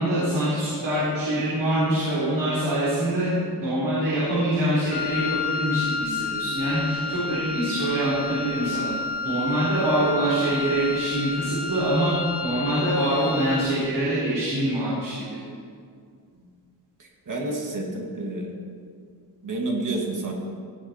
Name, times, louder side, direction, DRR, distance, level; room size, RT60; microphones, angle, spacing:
voice 1, 0.0-3.3 3.6-8.9 9.2-12.1 12.4-15.1, right 1 dB, 80° right, -10 dB, 3.7 m, -24 dB
Wind instrument woodwind instrument, 4.9-13.8, left 4 dB, 80° left, 1.0 m, -31 dB
voice 2, 17.0-18.5 19.4-20.3, right 2 dB, 50° right, 0 dB, 1.8 m, -30 dB
16.5 x 9.6 x 4.3 m, 2.2 s
wide cardioid pair, 175°, 40 cm